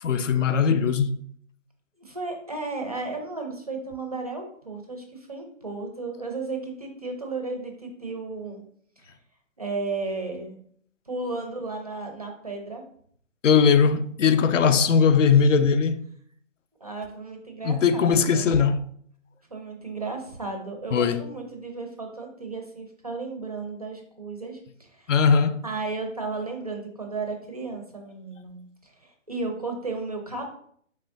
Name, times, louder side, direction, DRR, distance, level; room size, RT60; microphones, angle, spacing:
voice 1, 0.0-1.2 13.4-16.0 17.6-18.8 20.9-21.2 25.1-25.6, left 6 dB, 70° left, 0.5 m, -20 dB
voice 2, 2.0-8.6 9.0-9.1 9.6-10.6 11.1-12.9 16.8-18.5 19.5-25.2 25.6-30.4, right 3 dB, 30° right, 0.4 m, -34 dB
3.5 x 3.2 x 3.4 m
figure-of-eight pair, 150°, 39 cm